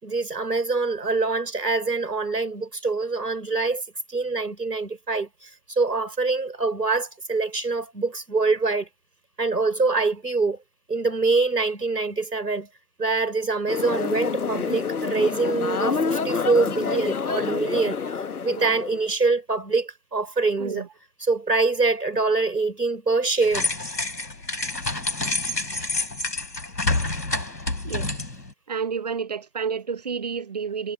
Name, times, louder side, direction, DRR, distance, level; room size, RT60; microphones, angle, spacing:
voice 1, 0.0-3.8 4.1-8.9 9.4-10.6 10.9-12.7 13.0-18.0 18.4-20.9 21.2-23.7, right 3 dB, 70° right, 6.1 m, -24 dB
sound 1, 13.7-19.1, left 5 dB, 60° left, 1.1 m, -27 dB
sound 2, 23.4-28.5, left 2 dB, 75° left, 5.7 m, -28 dB
voice 2, 28.7-30.9, right 6 dB, 25° right, 1.0 m, -30 dB
figure-of-eight pair, 140°, 50 cm